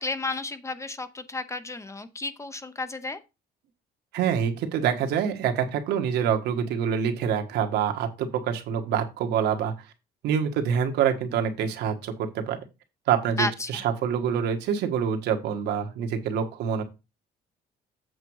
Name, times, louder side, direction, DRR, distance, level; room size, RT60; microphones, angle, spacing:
voice 1, 0.0-3.2 13.4-13.8, left 2 dB, 15° left, 12 dB, 0.8 m, -32 dB
voice 2, 4.1-9.7 10.2-12.6 13.1-16.8, right 8 dB, 80° right, 5 dB, 1.6 m, -26 dB
8.1 x 5.2 x 4.7 m, 0.26 s
cardioid pair, 110°, 17 cm